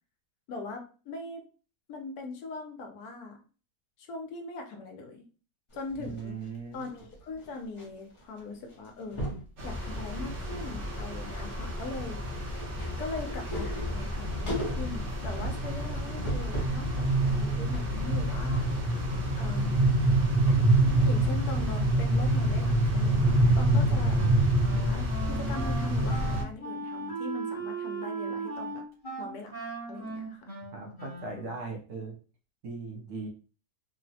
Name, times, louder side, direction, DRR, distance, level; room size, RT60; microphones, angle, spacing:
voice 1, 0.5-1.4 1.9-3.4 4.0-5.2 5.7-6.4 6.7-9.2 9.6-12.2 13.0-18.8 19.4-19.9 21.0-24.2 24.6-28.8 29.2-29.5 29.9-30.5, left 3 dB, 75° left, 3 dB, 1.1 m, -41 dB
sound 1, 5.7-7.9 8.1-8.4 8.7-9.5 10.0-10.7 11.0-16.9 17.3-21.9 22.3-22.4, right 1 dB, 35° left, 0.4 m, -39 dB
voice 2, 6.0-6.9 30.7-32.1 32.6-33.3, right 4 dB, 75° right, 2 dB, 1.3 m, -38 dB
sound 2, 9.6-26.4, right 1 dB, 45° right, 0.8 m, -27 dB
Wind instrument woodwind instrument, 24.1-31.6, right 4 dB, 15° left, 0.9 m, -38 dB
3.5 x 2.0 x 2.7 m, 0.37 s
omnidirectional pair, 1.7 m